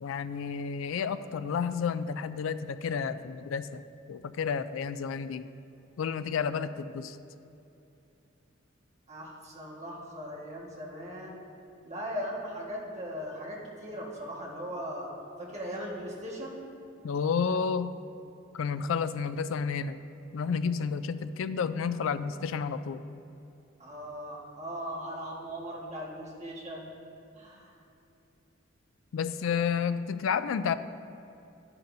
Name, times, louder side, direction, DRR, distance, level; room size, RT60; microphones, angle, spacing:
voice 1, 0.0-3.8 4.1-5.5 6.0-7.2 17.0-18.0 18.5-20.0 20.3-23.0 29.1-30.7, left 6 dB, 80° left, 12 dB, 0.3 m, -31 dB
voice 2, 9.1-11.4 11.8-15.1 15.4-16.6 23.8-26.9 27.4-27.7, equal, 35° right, -3 dB, 1.6 m, -39 dB
11.0 x 11.0 x 2.7 m, 2.8 s
head